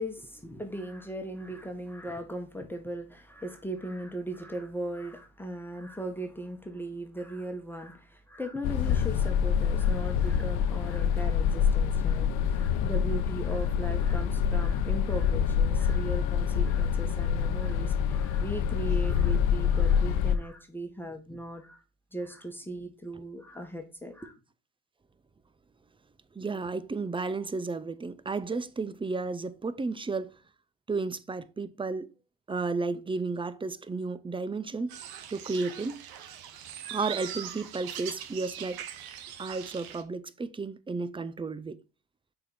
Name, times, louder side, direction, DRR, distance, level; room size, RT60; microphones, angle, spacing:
voice 1, 0.0-21.8 22.1-24.3, right 1 dB, 5° left, 1.6 m, -38 dB
sound 1, 8.6-20.4, left 7 dB, 70° left, 0.9 m, -26 dB
voice 2, 26.3-30.3 30.9-32.1 32.5-35.0 35.3-36.0 36.9-38.9 39.4-41.8, right 3 dB, 15° right, 0.6 m, -33 dB
sound 2, 34.9-40.0, right 9 dB, 65° right, 1.2 m, -41 dB
6.3 x 4.7 x 4.2 m
hypercardioid pair, 65°, 39 cm